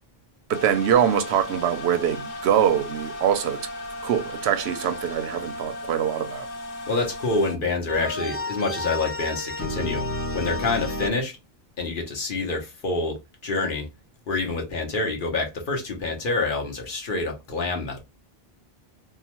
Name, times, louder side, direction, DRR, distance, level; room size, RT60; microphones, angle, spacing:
sound 1, 0.5-7.6, left 1 dB, 90° left, 0.9 m, -36 dB
voice 1, 0.5-3.6 4.0-6.5, right 9 dB, 85° right, 0.8 m, -23 dB
voice 2, 6.9-10.0 10.3-11.4 11.8-13.9 14.3-18.0, left 3 dB, 55° left, 1.0 m, -27 dB
sound 2, 7.9-11.1, left 1 dB, 20° left, 0.4 m, -30 dB
2.8 x 2.1 x 2.8 m
omnidirectional pair, 1.1 m